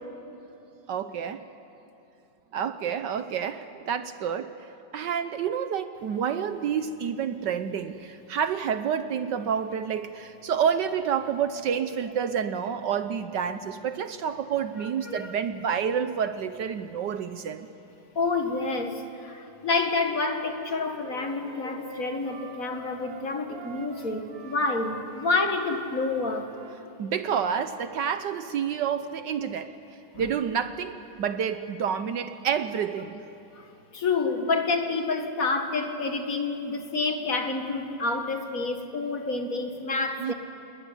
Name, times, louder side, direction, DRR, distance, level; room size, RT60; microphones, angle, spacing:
voice 1, 0.9-1.5 2.5-17.7 27.0-33.3 40.2-40.3, right 7 dB, 65° right, 11 dB, 1.3 m, -29 dB
voice 2, 18.2-26.5 30.1-30.3 33.6-33.7 33.9-40.3, left 3 dB, 45° left, 5 dB, 2.1 m, -28 dB
Wind instrument woodwind instrument, 20.2-26.8, right 4 dB, 50° right, 2.4 m, -46 dB
28.5 x 20.0 x 9.9 m, 2.8 s
omnidirectional pair, 2.2 m